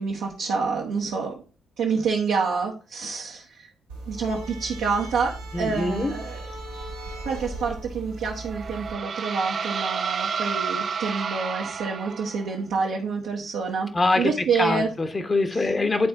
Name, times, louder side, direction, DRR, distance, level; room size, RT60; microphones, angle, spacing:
voice 1, 0.0-1.4 1.8-3.7 4.1-6.4 7.2-13.9 14.1-14.9, right 5 dB, 65° right, -3 dB, 1.1 m, -27 dB
sound 1, 3.9-8.9, right 2 dB, 80° right, 1.6 m, -37 dB
voice 2, 5.5-6.1 13.9-16.1, left 2 dB, 30° left, 8 dB, 1.2 m, -24 dB
sound 2, 8.2-12.5, right 6 dB, 45° right, 0.5 m, -30 dB
9.9 x 4.3 x 3.5 m, 0.36 s
figure-of-eight pair, 40°, 0 cm